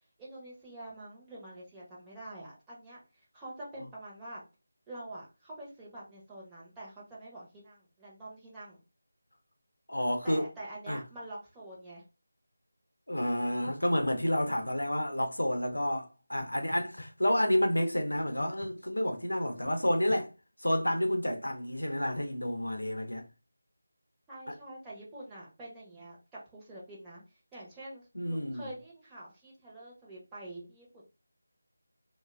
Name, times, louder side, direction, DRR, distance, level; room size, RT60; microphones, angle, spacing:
voice 1, 0.2-4.4 4.9-8.8 10.2-12.0 24.3-27.2 27.5-30.9, right 1 dB, 10° right, 0.7 m, -46 dB
voice 2, 9.9-10.5 10.9-11.0 13.1-20.3 20.6-23.3 24.5-24.6 28.1-28.7, equal, 70° left, 0.7 m, -30 dB
sound 1, 13.7-14.5 16.4-17.1 18.2-18.7 19.6-20.2, left 2 dB, 30° left, 0.6 m, -45 dB
3.1 x 2.2 x 2.4 m
figure-of-eight pair, 160°, 0 cm